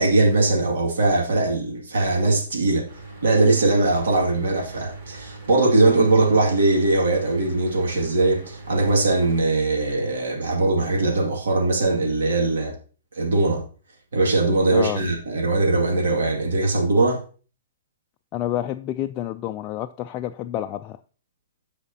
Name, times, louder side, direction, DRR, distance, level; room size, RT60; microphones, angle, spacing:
voice 1, 0.0-2.8 3.2-12.7 13.1-13.6 14.1-17.2, right 2 dB, 80° right, 2.2 m, -20 dB
Mechanical fan, 2.9-9.4, right 3 dB, 50° right, 3.5 m, -41 dB
voice 2, 14.7-15.0 18.3-21.0, left 12 dB, 30° left, 0.3 m, -29 dB
14.0 x 4.9 x 2.8 m
hypercardioid pair, 145°, 0 cm